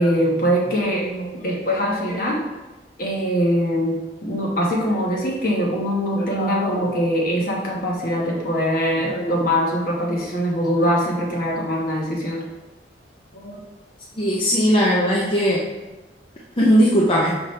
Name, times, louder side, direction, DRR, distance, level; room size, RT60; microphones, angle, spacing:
voice 1, 0.0-2.4 3.0-12.4 13.3-13.6, equal, 55° left, -2 dB, 1.3 m, -22 dB
voice 2, 14.2-15.6 16.6-17.3, equal, 30° left, -4 dB, 0.6 m, -18 dB
5.7 x 5.1 x 3.2 m, 1.1 s
head